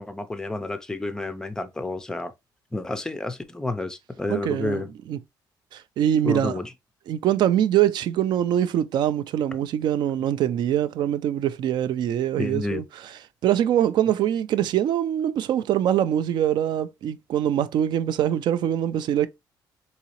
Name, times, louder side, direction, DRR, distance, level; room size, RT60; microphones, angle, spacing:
voice 1, 0.0-2.3 2.7-4.9 6.2-6.7 12.4-12.8, left 2 dB, 10° left, 0.4 m, -30 dB
voice 2, 4.3-5.2 5.7-6.6 7.1-12.8 13.4-19.3, right 10 dB, 65° right, 0.4 m, -23 dB
3.9 x 2.8 x 2.9 m
cardioid pair, 155°, 8 cm